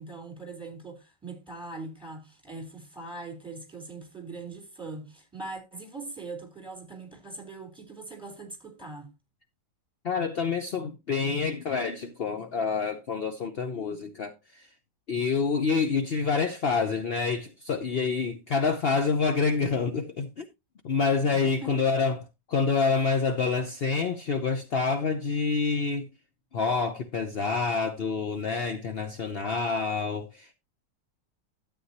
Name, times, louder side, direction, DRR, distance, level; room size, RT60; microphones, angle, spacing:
voice 1, 0.0-9.1 21.3-21.8, right 3 dB, ahead, 3.5 m, -41 dB
voice 2, 10.0-14.7 15.1-20.5 20.8-26.1 26.5-30.5, left 4 dB, 50° left, 0.7 m, -27 dB
13.0 x 8.7 x 2.8 m
omnidirectional pair, 2.0 m